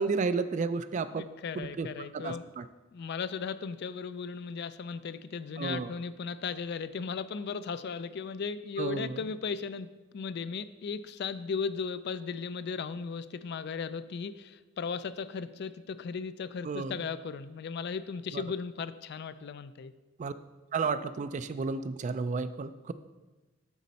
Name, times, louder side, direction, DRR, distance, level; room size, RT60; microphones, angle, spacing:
voice 1, 0.0-1.2 1.6-1.9 2.2-2.3 5.6-5.9 8.8-9.0 16.7-16.9 20.2-20.3 20.7-22.9, right 4 dB, 35° right, 13 dB, 0.3 m, -31 dB
voice 2, 1.2-2.4 2.9-19.9, left 5 dB, 55° left, 14 dB, 0.3 m, -36 dB
8.3 x 6.3 x 4.1 m, 1.2 s
head